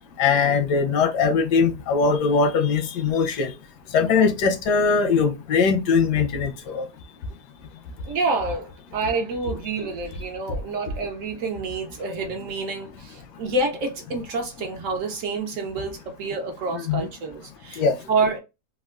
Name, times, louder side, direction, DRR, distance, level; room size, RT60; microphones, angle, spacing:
voice 1, 0.2-3.5 3.9-6.8 16.7-17.0 17.8-18.0, left 5 dB, 90° left, 1.2 m, -21 dB
voice 2, 8.0-18.4, right 3 dB, 70° right, 0.8 m, -28 dB
3.6 x 2.2 x 2.3 m
omnidirectional pair, 1.7 m